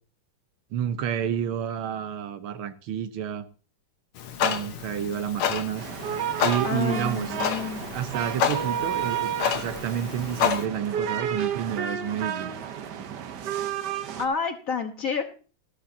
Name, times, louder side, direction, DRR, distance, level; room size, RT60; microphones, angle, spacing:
voice 1, 0.7-3.5 4.4-5.9 6.4-7.3 7.9-12.5, right 9 dB, 80° right, 1.7 m, -30 dB
Clock, 4.2-10.6, left 8 dB, 80° left, 1.9 m, -30 dB
sound 1, 5.8-14.3, right 9 dB, 60° right, 1.3 m, -31 dB
voice 2, 6.6-7.9 14.2-15.2, left 5 dB, 45° left, 1.3 m, -29 dB
13.0 x 13.0 x 2.7 m
omnidirectional pair, 2.3 m